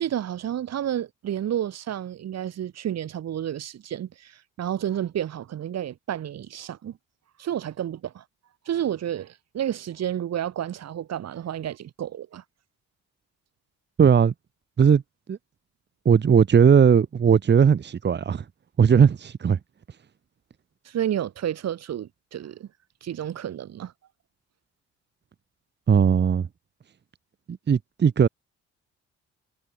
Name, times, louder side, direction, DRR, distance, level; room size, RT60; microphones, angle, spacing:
voice 1, 0.0-7.0 7.4-8.2 8.7-12.4 20.8-22.7 23.0-23.9, right 10 dB, 60° right, 1.5 m, -30 dB
voice 2, 14.0-14.3 14.8-15.0 15.3-15.4 16.0-18.4 18.8-19.6 25.9-26.5 27.5-28.3, right 7 dB, 35° right, 1.1 m, -18 dB
cardioid pair, 90°, 30 cm